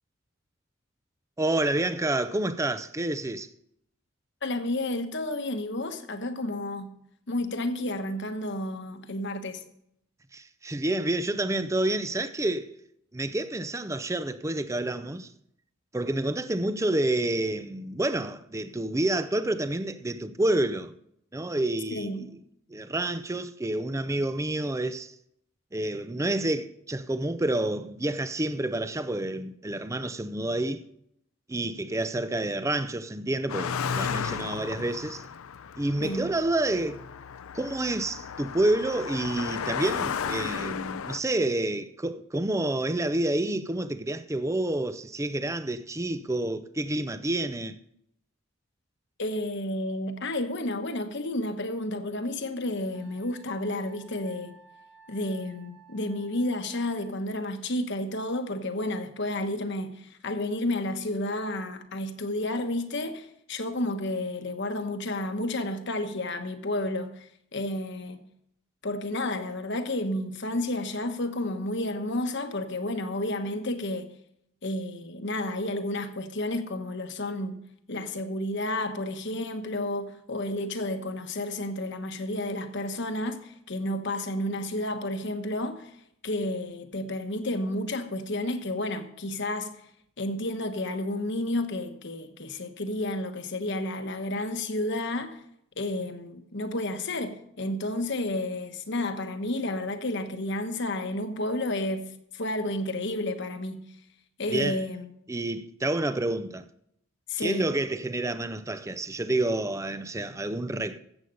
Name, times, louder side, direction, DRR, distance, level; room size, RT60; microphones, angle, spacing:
voice 1, 1.4-3.5 10.3-12.7 13.1-15.3 15.9-20.9 21.3-22.3 22.7-25.1 25.7-30.8 31.5-35.2 35.8-37.0 37.5-47.8 104.5-104.8 105.3-106.7 107.4-111.0, right 1 dB, 15° right, 0.5 m, -29 dB
voice 2, 4.4-6.9 7.3-9.6 21.9-22.3 36.0-36.3 49.2-54.5 55.1-68.3 68.8-74.1 74.6-77.6 77.9-85.9 86.2-89.7 90.2-95.4 95.8-103.9 104.4-105.1 107.3-107.7, left 1 dB, 55° left, 1.2 m, -31 dB
Car passing by, 33.5-41.2, left 7 dB, 85° left, 0.5 m, -34 dB
Wind instrument woodwind instrument, 52.9-57.2, right 6 dB, 70° right, 2.3 m, -55 dB
14.5 x 8.0 x 5.4 m
head